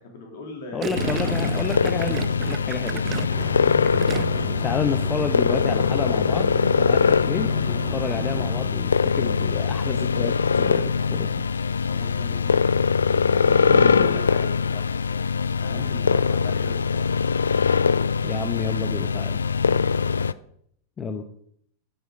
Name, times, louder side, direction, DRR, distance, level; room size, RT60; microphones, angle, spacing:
voice 1, 0.1-1.3 2.8-3.0 11.8-12.6 13.0-15.0 15.6-17.2 19.6-19.8 20.1-20.3, left 2 dB, 55° left, 2 dB, 3.5 m, -39 dB
voice 2, 0.7-2.9 4.6-6.5 6.8-11.4 13.7-14.1 18.2-19.4 21.0-21.2, left 5 dB, 20° left, 7 dB, 1.0 m, -30 dB
Gurgling, 0.8-4.6 4.9-5.3, right 9 dB, 30° right, 0.6 m, -33 dB
sound 1, 1.0-20.3, left 5 dB, 75° left, 0.3 m, -22 dB
sound 2, 3.3-8.7, equal, ahead, 3.7 m, -35 dB
13.0 x 8.2 x 5.3 m, 0.68 s
figure-of-eight pair, 90°, 0 cm